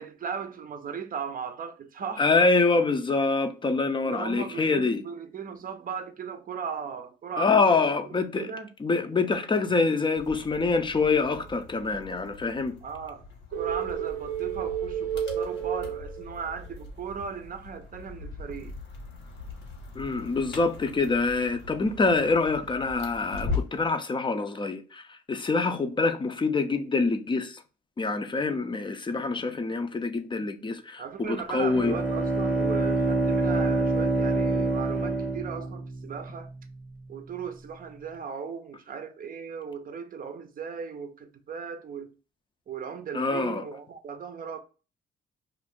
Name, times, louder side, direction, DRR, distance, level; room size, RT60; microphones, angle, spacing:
voice 1, 0.0-2.3 4.0-7.9 8.4-8.7 12.8-13.2 13.5-18.7 31.0-36.5 37.1-42.1 42.7-44.6, right 6 dB, 45° right, 0.6 m, -37 dB
voice 2, 2.2-5.0 7.4-8.5 8.8-12.8 19.9-27.6 28.0-31.9 43.1-43.6, left 3 dB, 25° left, 0.5 m, -25 dB
sound 1, 10.2-23.9, left 4 dB, 75° left, 1.3 m, -40 dB
sound 2, 13.5-16.7, right 9 dB, 90° right, 0.5 m, -31 dB
Bowed string instrument, 31.5-36.2, right 2 dB, 10° right, 0.9 m, -26 dB
2.5 x 2.5 x 3.5 m
cardioid pair, 90°, 20 cm